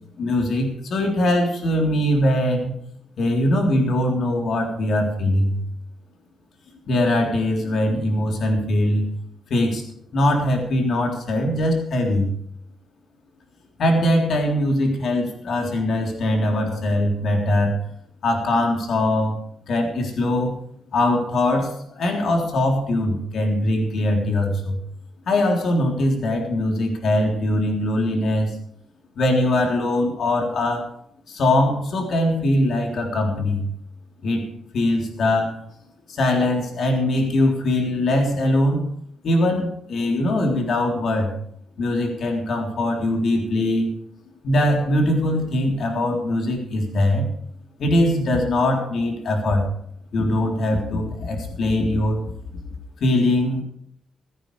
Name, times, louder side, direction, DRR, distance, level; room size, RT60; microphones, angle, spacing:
voice 1, 0.2-2.8 3.2-5.6 6.9-9.1 9.5-9.8 10.1-12.3 13.8-17.8 18.2-19.4 19.7-20.6 20.9-24.8 25.3-28.6 29.2-30.9 31.3-33.7 34.2-34.4 34.7-35.6 36.1-38.9 39.2-41.4 41.8-43.9 44.4-47.3 47.8-49.7 50.1-52.2 53.0-53.6, left 1 dB, 55° left, 1 dB, 3.7 m, -21 dB
16.0 x 15.5 x 3.4 m, 0.68 s
cardioid pair, 150°, 0 cm